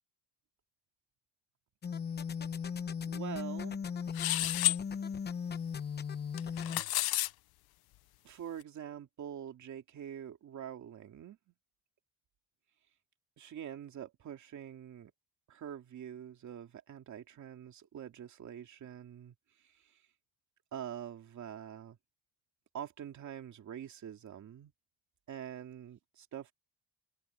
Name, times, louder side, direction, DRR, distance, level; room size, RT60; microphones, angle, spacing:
sound 1, 1.8-6.8, left 6 dB, 25° left, 0.8 m, -37 dB
voice 1, 3.0-3.8 8.2-11.5 13.4-15.1 15.5-20.1 20.7-22.0 22.7-24.7 25.3-26.5, right 9 dB, 45° right, 2.6 m, -45 dB
sound 2, 4.1-4.8 6.4-7.3, left 17 dB, 60° left, 0.7 m, -30 dB
cardioid pair, 180°, 41 cm